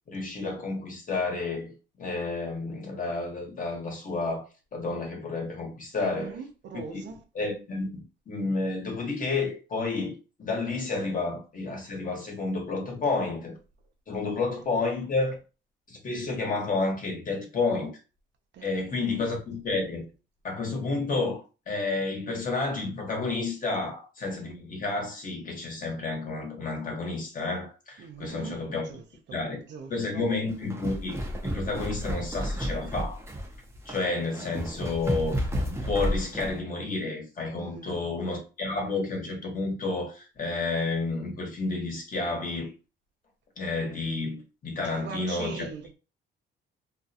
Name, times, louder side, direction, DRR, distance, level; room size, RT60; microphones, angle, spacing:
voice 1, 0.1-4.4 4.7-6.4 6.9-10.1 10.4-13.5 14.1-15.4 15.9-17.9 18.6-20.1 20.4-28.9 29.3-29.6 29.9-33.2 33.8-42.7 43.6-45.7, left 3 dB, 45° left, 1.1 m, -30 dB
voice 2, 6.0-7.2 14.2-14.3 18.5-19.2 28.0-28.6 28.9-29.0 29.3-29.4 29.7-30.2 37.6-38.2 44.8-46.0, right 6 dB, 65° right, 0.6 m, -41 dB
sound 1, 30.5-36.6, equal, 15° right, 0.6 m, -32 dB
2.5 x 2.3 x 2.7 m
cardioid pair, 90°, 20 cm